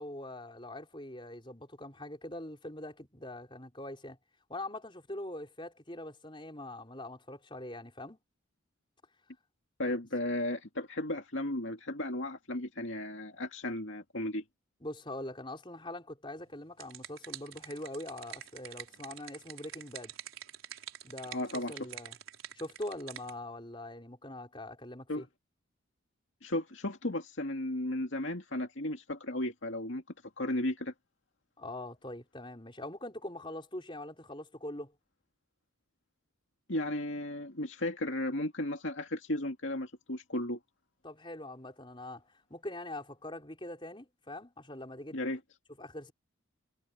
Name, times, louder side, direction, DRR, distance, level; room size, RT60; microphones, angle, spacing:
voice 1, 0.0-4.2 4.5-8.2 14.8-20.1 21.0-22.1 22.5-25.3 31.6-34.9 41.0-42.2 42.5-45.2 45.8-46.1, left 1 dB, 25° left, 4.7 m, -43 dB
voice 2, 9.8-14.4 21.3-21.7 25.1-25.2 26.4-30.0 30.4-30.9 36.7-40.6 45.1-45.4, left 1 dB, 65° left, 2.4 m, -34 dB
sound 1, 16.5-23.3, right 10 dB, 80° right, 4.4 m, -47 dB
head